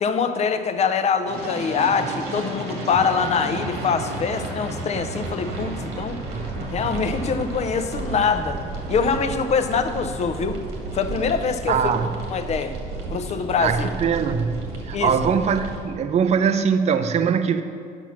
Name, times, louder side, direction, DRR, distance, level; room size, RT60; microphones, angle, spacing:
voice 1, 0.0-6.2 6.7-8.6 8.9-10.6 10.9-11.9 12.3-12.8 13.1-13.9 14.9-15.1, left 5 dB, 40° left, 9 dB, 0.6 m, -24 dB
sound 1, 1.3-15.8, right 2 dB, 90° right, 1.9 m, -32 dB
voice 2, 6.3-6.7 11.7-12.1 13.6-14.6 14.9-17.6, right 6 dB, 40° right, 10 dB, 0.5 m, -22 dB
8.9 x 5.9 x 5.9 m, 2.4 s
cardioid pair, 110°, 17 cm